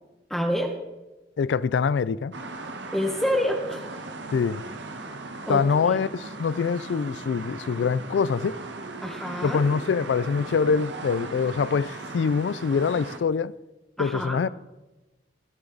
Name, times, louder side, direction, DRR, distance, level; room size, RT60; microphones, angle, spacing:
voice 1, 0.3-0.8 2.9-3.9 5.5-5.6 5.9-6.0 9.0-9.7 14.0-14.4, equal, ahead, 1.0 m, -27 dB
voice 2, 1.4-2.3 4.3-4.6 5.5-8.6 9.4-13.5 14.0-14.5, left 5 dB, 85° left, 0.4 m, -24 dB
sound 1, 2.3-13.2, right 3 dB, 90° right, 1.3 m, -38 dB
19.5 x 7.1 x 3.9 m
head